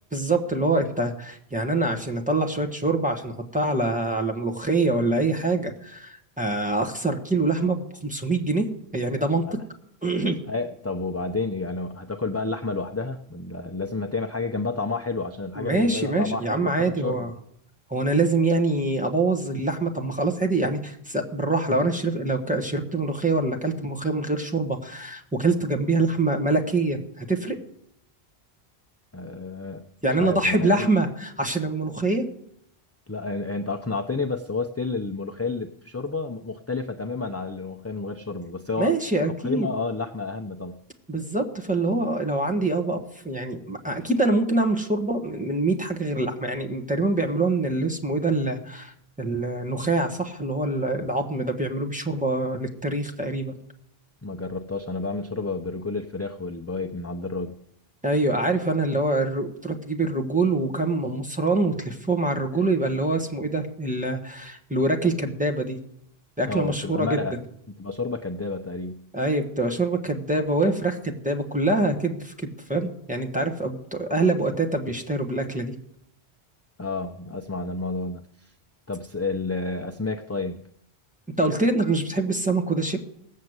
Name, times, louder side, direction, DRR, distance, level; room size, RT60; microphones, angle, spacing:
voice 1, 0.1-8.7 8.9-9.4 10.0-10.4 15.6-17.3 17.9-27.6 30.0-32.3 38.8-39.7 41.1-43.0 43.2-53.5 58.0-65.8 66.4-67.2 69.1-75.7 81.4-83.0, right 2 dB, 10° right, 4 dB, 1.4 m, -25 dB
voice 2, 10.5-17.3 29.1-29.9 30.2-30.9 33.1-39.0 39.4-40.7 54.2-57.6 66.5-67.4 67.8-69.0 76.8-78.5 78.9-80.6, left 3 dB, 20° left, 4 dB, 0.6 m, -30 dB
17.5 x 7.5 x 8.0 m, 0.76 s
omnidirectional pair, 1.0 m